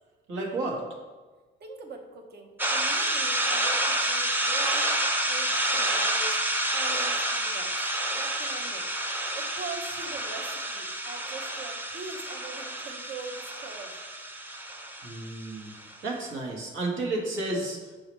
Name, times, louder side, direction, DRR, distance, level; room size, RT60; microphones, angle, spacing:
voice 1, 0.3-0.8 15.0-17.8, right 2 dB, 75° right, -2 dB, 1.4 m, -32 dB
voice 2, 1.6-4.9 5.2-6.4 6.7-7.8 8.1-8.9 9.3-13.9, right 4 dB, 55° right, 2 dB, 1.0 m, -42 dB
sound 1, 2.6-15.9, right 1 dB, 10° right, 0.6 m, -29 dB
6.5 x 4.8 x 3.1 m, 1.3 s
cardioid pair, 90°, 20 cm